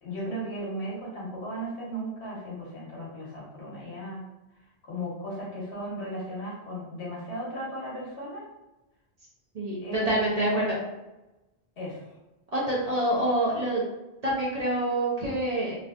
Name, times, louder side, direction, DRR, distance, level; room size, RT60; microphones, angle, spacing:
voice 1, 0.0-4.2 4.8-8.4 9.8-10.1 10.5-10.7 11.8-12.1, equal, 75° left, -5 dB, 1.4 m, -36 dB
voice 2, 9.5-10.8 12.5-13.8 14.2-15.7, right 1 dB, 45° right, -5 dB, 0.7 m, -26 dB
3.3 x 2.6 x 2.4 m, 1.0 s
omnidirectional pair, 1.1 m